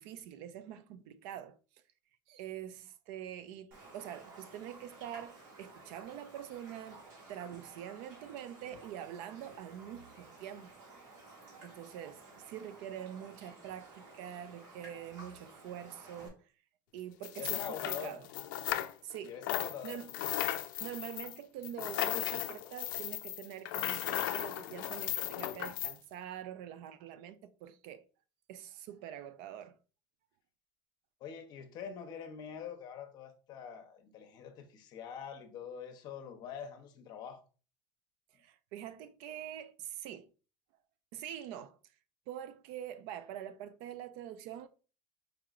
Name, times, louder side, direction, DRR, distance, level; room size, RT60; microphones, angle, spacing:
voice 1, 0.0-1.6 2.3-7.0 7.3-10.7 11.6-16.4 16.9-18.3 19.0-19.4 19.8-20.1 20.8-28.0 28.5-29.8 38.4-40.3 41.1-41.8 42.3-44.7, right 10 dB, 60° right, 0.4 m, -45 dB
Raindrop, 3.7-16.3, right 3 dB, 80° right, 1.6 m, -54 dB
sound 1, 17.2-19.2 19.4-25.9, left 14 dB, 85° left, 0.4 m, -36 dB
voice 2, 17.3-18.2 19.2-20.1 31.2-37.4, left 7 dB, 45° left, 0.7 m, -44 dB
4.7 x 2.9 x 2.4 m
cardioid pair, 145°, 10 cm